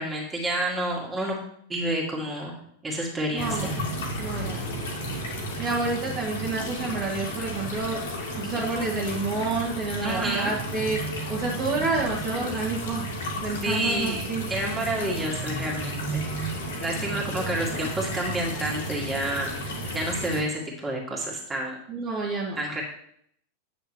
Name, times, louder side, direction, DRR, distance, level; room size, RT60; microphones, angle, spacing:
voice 1, 0.0-1.4 1.7-2.6 2.8-3.7 10.0-10.5 13.6-14.2 14.5-21.7 22.6-22.8, right 1 dB, 15° right, -2 dB, 2.4 m, -29 dB
voice 2, 3.3-3.7 4.2-4.7 5.6-8.0 8.4-11.0 11.3-13.0 13.4-14.5 21.9-22.6, right 3 dB, 35° right, -4 dB, 1.7 m, -29 dB
sound 1, 3.4-20.4, right 1 dB, 60° left, 2.1 m, -33 dB
9.1 x 6.6 x 3.2 m, 0.67 s
figure-of-eight pair, 90°, 0 cm